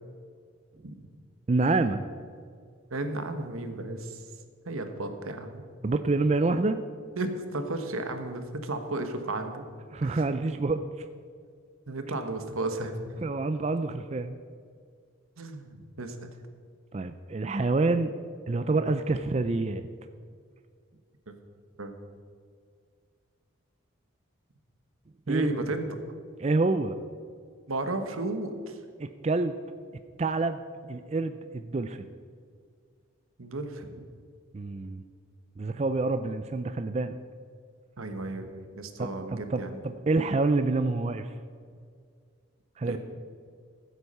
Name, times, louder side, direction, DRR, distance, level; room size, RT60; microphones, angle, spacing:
voice 1, 1.5-2.0 5.8-6.8 9.9-10.8 13.2-14.3 16.9-18.1 18.5-19.8 25.3-25.5 26.4-27.0 29.0-29.6 30.2-30.6 30.9-32.1 34.5-35.0 35.6-37.2 39.0-41.3 42.8-43.0, right 3 dB, 30° right, 9 dB, 0.4 m, -27 dB
voice 2, 2.9-4.3 4.6-5.6 7.2-9.6 10.0-10.3 11.9-13.2 15.4-16.3 21.3-21.4 21.8-21.9 25.3-26.0 27.7-28.8 33.4-34.0 38.0-39.8 42.8-43.0, right 2 dB, 90° right, 7 dB, 1.3 m, -34 dB
14.5 x 8.1 x 5.5 m, 2.1 s
head